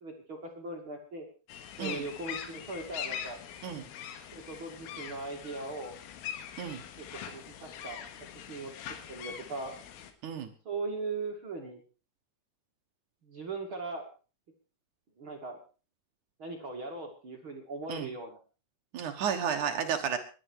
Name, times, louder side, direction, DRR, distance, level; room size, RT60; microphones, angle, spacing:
voice 1, 0.0-1.3 1.8-3.4 4.3-5.9 7.0-8.0 8.3-8.7 9.1-9.8 10.6-11.8 13.2-14.0 15.2-15.6 16.4-18.4 19.6-19.9, right 3 dB, 40° right, 2 dB, 2.0 m, -39 dB
sound 1, 1.5-10.1, left 9 dB, 85° left, 4.2 m, -43 dB
voice 2, 18.9-20.2, right 7 dB, 70° right, 6 dB, 1.9 m, -32 dB
21.0 x 11.0 x 4.7 m, 0.36 s
omnidirectional pair, 5.7 m